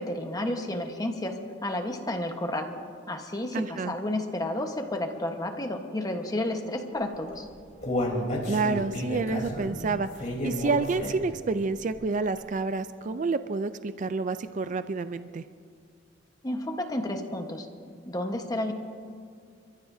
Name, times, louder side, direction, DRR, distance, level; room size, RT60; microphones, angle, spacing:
voice 1, 0.0-2.7 3.1-7.5 16.4-17.7 18.1-18.7, left 1 dB, 20° left, 4 dB, 1.2 m, -31 dB
voice 2, 3.5-3.9 8.5-10.1 10.4-15.4, right 4 dB, 40° right, 11 dB, 0.4 m, -29 dB
Human voice, 7.2-11.4 11.8-11.9 12.4-12.5, left 1 dB, 40° left, 3.5 m, -31 dB
29.5 x 15.0 x 2.7 m, 2.3 s
head